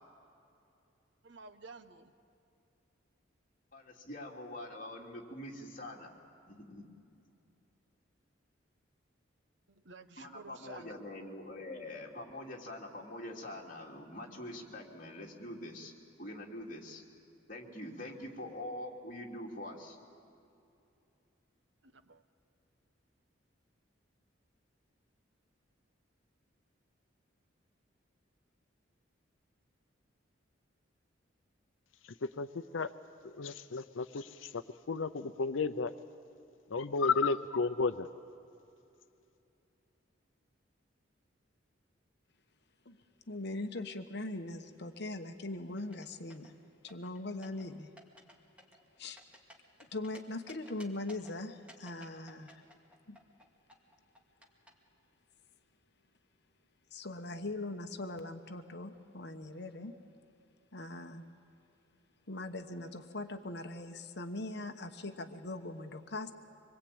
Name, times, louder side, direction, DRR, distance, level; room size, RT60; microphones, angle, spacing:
voice 1, 1.2-2.1 9.7-11.0 21.8-22.2, right 4 dB, 65° right, 9 dB, 1.1 m, -52 dB
voice 2, 3.7-6.1 6.5-6.9 10.2-15.9 16.2-17.0 17.5-20.0, left 1 dB, 45° left, -2 dB, 3.0 m, -44 dB
voice 3, 33.2-34.6 34.9-35.9 36.7-38.1, left 4 dB, 85° left, 11 dB, 0.7 m, -32 dB
voice 4, 43.3-46.5 46.8-47.9 49.0-49.2 49.8-52.6 53.1-53.2 56.9-59.9 60.7-61.2 62.3-66.3, left 2 dB, 60° left, 6 dB, 1.1 m, -41 dB
sound 1, 45.8-46.5 46.9-47.6 48.0-48.3 48.6-50.2 50.5-51.3 51.7-54.7, equal, 5° right, 2.1 m, -55 dB
25.5 x 21.5 x 8.7 m, 2.7 s
head